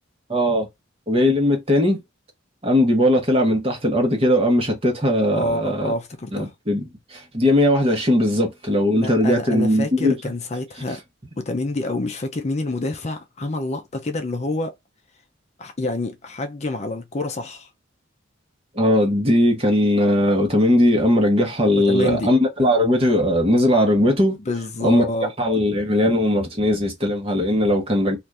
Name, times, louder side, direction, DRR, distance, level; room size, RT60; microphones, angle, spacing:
voice 1, 0.3-0.7 1.1-2.0 2.6-5.9 6.3-10.2 18.7-24.4 24.8-25.1 25.4-28.2, left 1 dB, 30° right, 1.1 m, -19 dB
voice 2, 5.3-6.5 9.0-11.0 11.4-14.7 15.6-17.7 21.9-22.3 24.5-25.3, left 2 dB, 35° left, 0.5 m, -27 dB
2.8 x 2.5 x 3.3 m
head